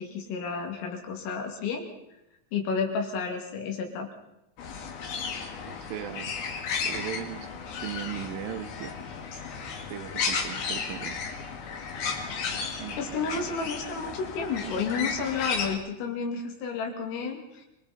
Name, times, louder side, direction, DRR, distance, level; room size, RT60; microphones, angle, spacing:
voice 1, 0.0-1.9 2.5-4.1 13.0-17.7, left 5 dB, 75° left, 2 dB, 5.0 m, -31 dB
sound 1, 4.6-15.8, left 5 dB, 55° left, 3.4 m, -34 dB
voice 2, 5.7-6.3 6.8-7.5 7.8-8.9 9.9-11.2 12.5-13.3, right 11 dB, 75° right, 8 dB, 3.4 m, -38 dB
28.5 x 22.5 x 4.2 m, 0.88 s
omnidirectional pair, 5.9 m